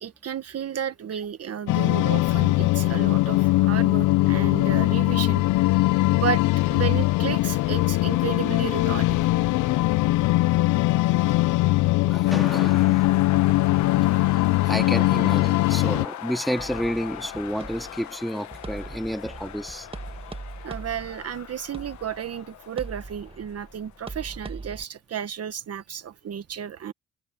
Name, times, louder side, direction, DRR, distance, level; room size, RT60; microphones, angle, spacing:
voice 1, 0.0-5.4 6.1-9.3 13.9-14.2 20.6-26.9, right 9 dB, 55° right, 1.4 m, -32 dB
sound 1, 1.7-16.0, left 18 dB, 85° left, 0.5 m, -21 dB
voice 2, 11.9-13.3 14.2-19.9, equal, ahead, 2.5 m, -31 dB
sound 2, 12.3-24.0, left 11 dB, 70° left, 1.3 m, -38 dB
sound 3, 16.6-24.8, right 3 dB, 20° right, 1.6 m, -41 dB
cardioid pair, 90°, 30 cm